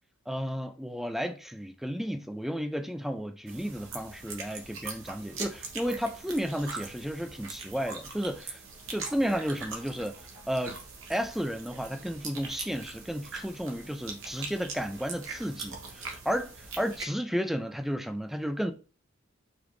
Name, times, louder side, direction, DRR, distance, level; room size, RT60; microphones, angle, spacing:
voice 1, 0.3-8.6 8.9-10.2 10.5-10.8 11.1-18.7, equal, ahead, 0.3 m, -33 dB
sound 1, 3.5-17.0, right 4 dB, 85° right, 1.0 m, -42 dB
5.0 x 2.5 x 3.1 m
head